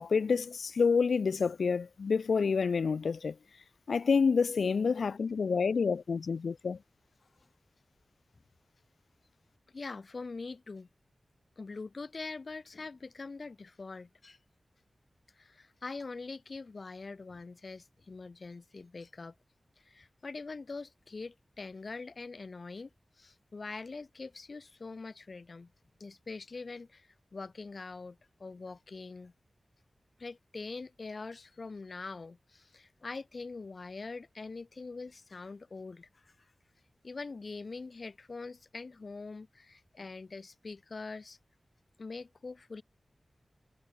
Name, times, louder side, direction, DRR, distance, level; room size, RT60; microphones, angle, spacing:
voice 1, 0.0-3.4 3.9-6.8, left 5 dB, 90° left, 0.3 m, -28 dB
voice 2, 9.7-10.9 11.6-14.4 15.3-19.4 19.8-22.9 23.2-25.7 26.0-29.3 30.2-36.5 37.0-41.4 42.0-42.8, left 3 dB, 65° left, 5.6 m, -43 dB
cardioid pair, 45°, 0 cm